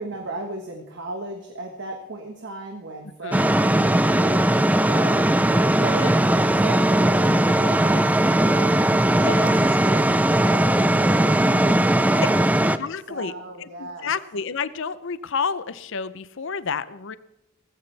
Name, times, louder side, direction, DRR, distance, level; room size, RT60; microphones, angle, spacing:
voice 1, 0.0-12.5 13.1-14.1, right 2 dB, 60° right, 3 dB, 1.4 m, -36 dB
sound 1, 3.3-12.8, right 1 dB, 10° right, 0.4 m, -19 dB
voice 2, 9.1-9.5 12.8-13.3 13.6-17.2, left 5 dB, 65° left, 15 dB, 0.7 m, -30 dB
18.0 x 16.0 x 3.4 m, 0.91 s
head